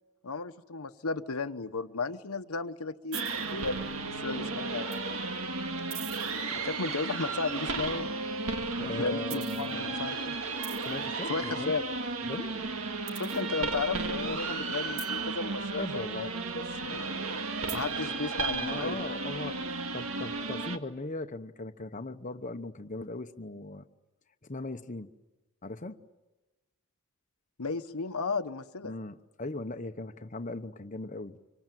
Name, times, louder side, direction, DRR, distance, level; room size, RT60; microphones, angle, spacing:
voice 1, 0.2-5.0 6.4-8.1 8.9-10.4 11.3-11.8 13.1-17.1 17.7-19.0 27.6-28.9, left 4 dB, 80° left, 1.1 m, -34 dB
sound 1, 3.1-20.8, right 3 dB, 70° right, 1.9 m, -34 dB
voice 2, 8.8-10.0 10.8-11.8 12.3-12.6 15.8-16.3 18.1-18.2 18.5-23.8 24.4-25.1 25.6-26.0 28.8-31.4, left 2 dB, 35° left, 0.9 m, -39 dB
25.5 x 25.0 x 9.1 m
head